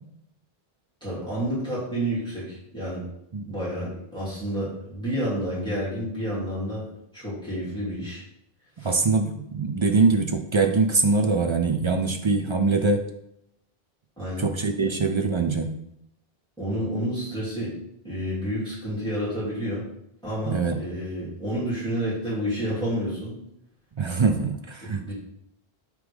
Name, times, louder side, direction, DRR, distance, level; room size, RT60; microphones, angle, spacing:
voice 1, 1.0-3.0 3.5-6.9 7.1-8.2 8.8-8.9 14.2-14.5 14.8-14.9 16.6-17.7 18.0-19.9 20.2-23.4 24.8-25.1, equal, 5° left, -9 dB, 2.5 m, -30 dB
voice 2, 8.8-13.1 14.4-15.7 20.5-20.8 24.0-25.1, right 4 dB, 40° right, 6 dB, 0.4 m, -23 dB
9.5 x 3.3 x 3.5 m, 0.78 s
omnidirectional pair, 1.0 m